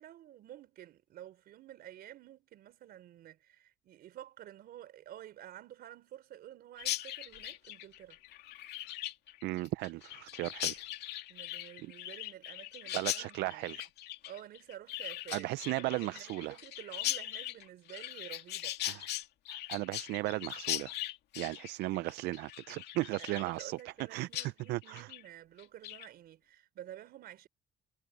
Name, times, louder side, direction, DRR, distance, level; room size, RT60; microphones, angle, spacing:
voice 1, 0.0-8.2 11.3-13.7 14.2-18.8 23.2-27.5, right 12 dB, 65° right, 3.8 m, -51 dB
Chirp tweet, 6.8-24.0 24.3-24.5 24.8-25.2 25.6-26.1, left 14 dB, 75° left, 2.3 m, -40 dB
voice 2, 9.4-10.8 12.9-13.9 15.3-16.6 18.8-19.1 19.5-20.9 21.4-25.1, right 19 dB, 85° right, 0.5 m, -36 dB
cardioid pair, 110°, 17 cm